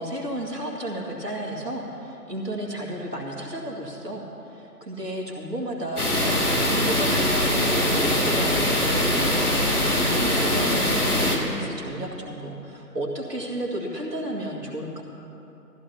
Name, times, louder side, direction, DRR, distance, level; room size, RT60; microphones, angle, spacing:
voice 1, 0.0-15.0, right 1 dB, 80° right, -2 dB, 2.3 m, -33 dB
sound 1, 6.0-11.4, left 1 dB, 65° left, 2.3 m, -22 dB
15.5 x 14.5 x 2.9 m, 2.9 s
figure-of-eight pair, 170°, 48 cm